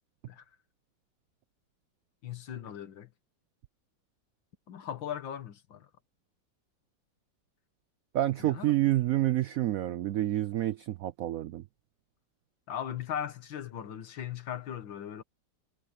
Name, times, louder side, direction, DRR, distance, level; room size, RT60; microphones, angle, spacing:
voice 1, 2.2-3.1 4.7-5.9 8.4-8.7 12.7-15.2, left 9 dB, 85° left, 2.2 m, -38 dB
voice 2, 8.1-11.6, right 14 dB, 80° right, 0.7 m, -28 dB
omnidirectional pair, 2.0 m